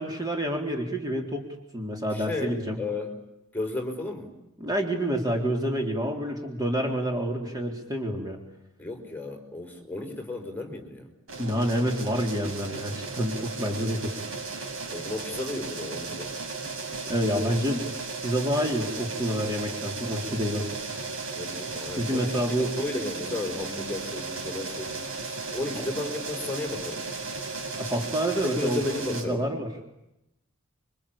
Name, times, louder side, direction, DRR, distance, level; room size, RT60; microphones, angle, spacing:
voice 1, 0.0-1.4 1.7-2.8 4.6-8.4 11.4-14.1 17.1-17.9 18.2-20.7 22.0-22.8 27.8-28.8 29.1-29.7, equal, 20° right, 2 dB, 3.7 m, -28 dB
voice 2, 2.1-3.1 3.5-4.4 8.8-11.1 14.9-16.3 21.3-22.4 22.7-25.1 25.5-27.1 28.4-29.5, left 2 dB, 10° left, 4 dB, 5.1 m, -34 dB
sound 1, 11.3-29.2, right 3 dB, 75° right, 7.5 m, -35 dB
27.5 x 25.0 x 8.6 m, 0.88 s
head